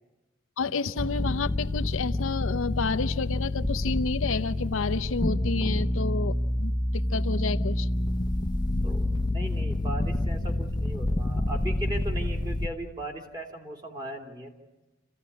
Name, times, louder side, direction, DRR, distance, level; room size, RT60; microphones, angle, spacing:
voice 1, 0.6-7.9 8.3-8.9, left 4 dB, 80° left, 11 dB, 0.7 m, -30 dB
sound 1, 1.0-12.7, left 1 dB, 20° left, 0.8 m, -28 dB
voice 2, 9.3-14.5, right 1 dB, 20° right, 3 dB, 2.6 m, -37 dB
27.0 x 15.5 x 9.8 m, 1.1 s
head